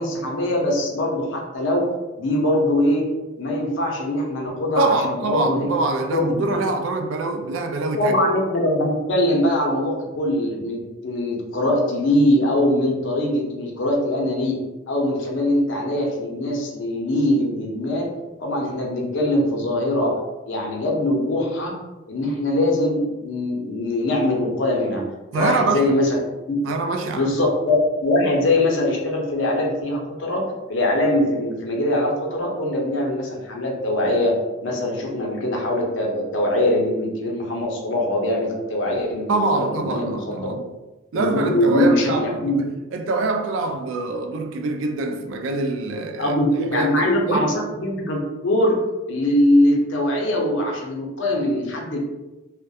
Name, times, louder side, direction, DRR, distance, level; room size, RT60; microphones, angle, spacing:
voice 1, 0.0-1.8 2.2-3.1 3.4-5.7 6.1-6.5 8.0-14.6 14.9-18.1 18.4-21.7 22.1-25.0 25.3-26.2 26.5-26.6 27.1-27.8 28.0-30.4 30.7-34.3 34.6-40.6 41.1-42.6 46.2-48.8 49.1-52.0, left 1 dB, 75° left, 0.6 m, -22 dB
voice 2, 4.8-8.2 25.3-25.9 26.7-27.3 39.3-40.6 41.1-46.4 46.7-47.6, right 3 dB, 80° right, 0.3 m, -24 dB
2.3 x 2.1 x 2.6 m
head